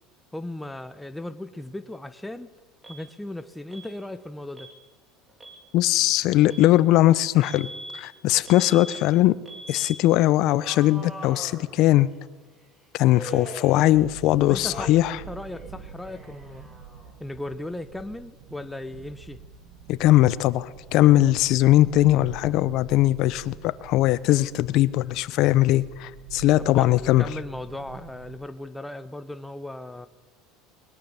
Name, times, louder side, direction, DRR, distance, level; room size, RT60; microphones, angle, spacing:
voice 1, 0.3-2.5 2.9-4.7 14.5-16.7 17.2-19.4 26.6-30.1, left 1 dB, 5° left, 0.9 m, -37 dB
Alarm, 2.8-3.0 3.7-3.9 4.5-4.8 5.3-5.6 6.5-6.7 7.4-8.0 8.5-9.0 9.5-10.0 10.6-12.1 13.1-14.3 14.7-15.2 15.5-17.2, right 1 dB, 15° right, 3.6 m, -41 dB
voice 2, 5.7-7.7 7.9-9.4 9.7-12.1 12.9-15.2 19.9-27.2, left 15 dB, 60° left, 0.9 m, -20 dB
sound 1, 13.9-28.4, right 6 dB, 70° right, 4.9 m, -45 dB
21.5 x 21.0 x 7.2 m
supercardioid pair, 125°, 0 cm